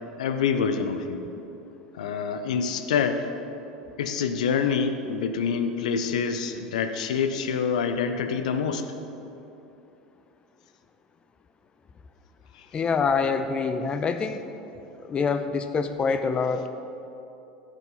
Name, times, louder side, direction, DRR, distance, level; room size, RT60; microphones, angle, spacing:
voice 1, 0.2-1.2 1.9-3.3 4.0-8.9 12.5-12.7, left 6 dB, 60° left, 8 dB, 0.7 m, -26 dB
voice 2, 12.7-14.4 15.0-16.7, left 5 dB, 25° left, 9 dB, 0.6 m, -25 dB
13.0 x 8.3 x 3.9 m, 2.9 s
figure-of-eight pair, 75°, 4 cm